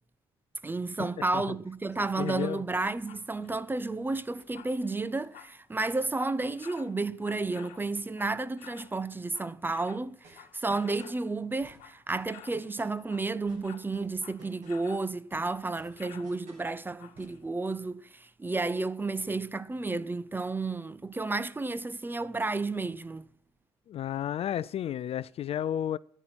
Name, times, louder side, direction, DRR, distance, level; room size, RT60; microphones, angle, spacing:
voice 1, 0.6-23.3, right 3 dB, 15° right, 0.7 m, -32 dB
sound 1, 2.2-2.6 3.0-9.0 9.2-11.2 11.7-12.0 12.3-12.6 13.0-15.1 15.4-15.6 15.9-16.4 17.0-17.4 17.8-17.9, left 11 dB, 65° left, 1.4 m, -52 dB
voice 2, 2.2-2.6 23.9-26.0, left 10 dB, 45° left, 0.4 m, -32 dB
sound 2, 10.2-11.2 11.6-13.1 13.5-15.0 15.3-16.7 17.1-17.4, right 3 dB, 55° right, 7.4 m, -55 dB
14.0 x 10.0 x 6.2 m
hypercardioid pair, 65°, 14 cm